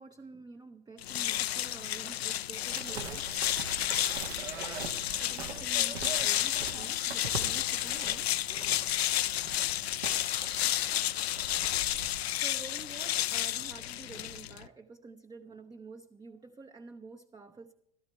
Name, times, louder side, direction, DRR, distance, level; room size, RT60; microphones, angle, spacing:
voice 1, 0.0-3.3 5.2-8.3 12.3-17.7, right 3 dB, 15° right, 7 dB, 0.6 m, -49 dB
sound 1, 1.0-14.7, left 13 dB, 90° left, 0.5 m, -31 dB
sound 2, 2.7-12.3, right 5 dB, 80° right, 1.5 m, -43 dB
15.5 x 12.5 x 4.5 m, 0.81 s
hypercardioid pair, 95°, 30 cm